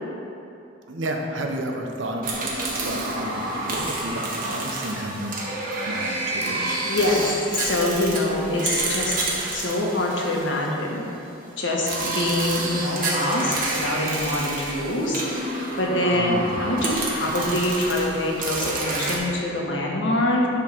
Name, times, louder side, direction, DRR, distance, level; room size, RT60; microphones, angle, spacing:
voice 1, 0.9-6.8 16.1-16.6, right 1 dB, 80° right, 2 dB, 0.9 m, -32 dB
sound 1, 2.2-11.1 11.9-19.2, right 2 dB, 50° right, 1.5 m, -29 dB
voice 2, 6.8-9.2 9.5-11.1 11.6-20.5, left 1 dB, 70° left, -2 dB, 1.5 m, -25 dB
11.0 x 3.8 x 6.2 m, 2.8 s
head